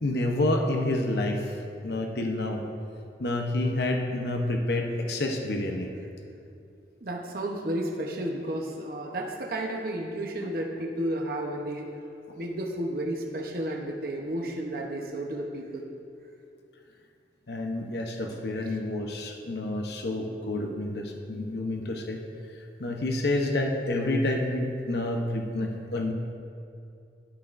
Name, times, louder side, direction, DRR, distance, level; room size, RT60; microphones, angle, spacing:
voice 1, 0.0-1.6 1.8-2.6 3.2-5.9 9.1-9.2 10.4-10.5 12.3-12.4 17.5-22.2 22.6-26.1, left 2 dB, 65° left, 2 dB, 0.8 m, -29 dB
voice 2, 7.0-11.9 12.4-15.8 18.6-18.7, right 1 dB, 55° right, 0 dB, 0.8 m, -32 dB
13.0 x 11.0 x 2.5 m, 2.5 s
head